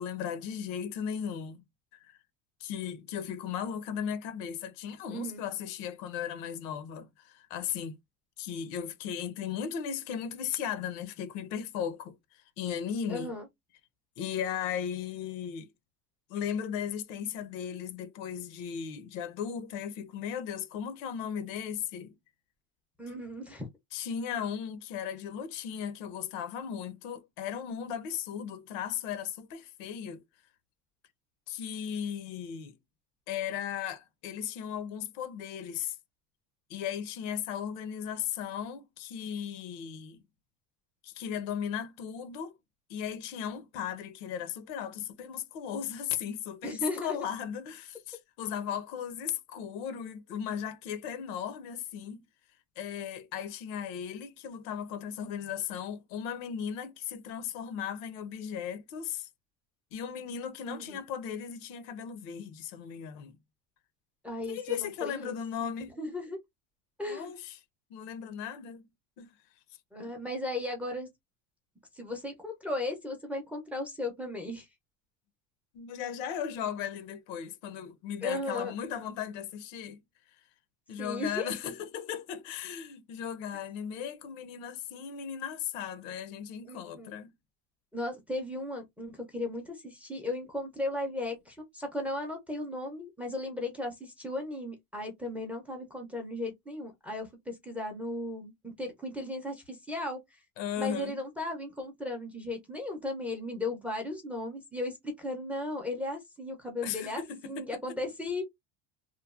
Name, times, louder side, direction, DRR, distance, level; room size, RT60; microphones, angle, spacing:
voice 1, 0.0-1.6 1.9-2.2 2.6-8.0 8.4-13.3 14.2-15.7 16.3-22.1 23.9-30.2 31.5-32.8 33.3-36.0 36.7-40.2 41.0-42.5 42.9-52.2 52.8-59.3 59.9-63.4 64.5-65.9 67.1-67.6 67.9-68.9 69.2-69.3 75.7-80.0 80.9-87.3 100.6-101.2 106.8-107.7, left 8 dB, 85° left, 0.8 m, -36 dB
voice 2, 5.1-5.4 13.1-13.5 23.0-23.7 46.6-47.2 60.6-61.0 64.2-65.4 66.0-66.4 67.0-67.3 69.9-71.1 71.9-74.7 78.2-78.7 81.0-81.5 86.7-87.1 87.9-100.2 100.8-108.4, left 2 dB, 5° right, 0.4 m, -36 dB
3.0 x 2.1 x 2.3 m
cardioid pair, 160°, 37 cm